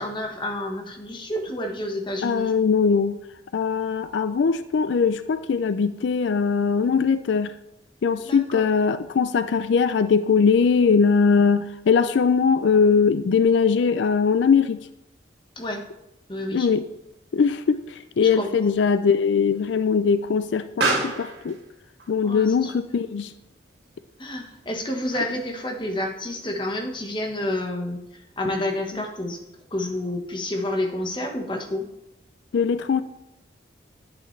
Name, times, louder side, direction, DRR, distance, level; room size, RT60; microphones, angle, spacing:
voice 1, 0.0-2.5 8.2-8.6 15.6-15.8 16.3-16.7 18.2-18.5 22.2-22.7 24.2-28.0 28.4-29.4 29.7-31.9, left 1 dB, 25° left, 2 dB, 1.3 m, -29 dB
voice 2, 2.2-3.2 3.5-7.5 8.0-14.8 16.5-16.9 17.3-21.6 22.1-23.3 32.5-33.0, left 5 dB, 80° left, 12 dB, 0.4 m, -21 dB
Explosion, 16.6-25.6, right 2 dB, 70° right, 2.4 m, -34 dB
10.5 x 8.3 x 3.2 m, 0.90 s
head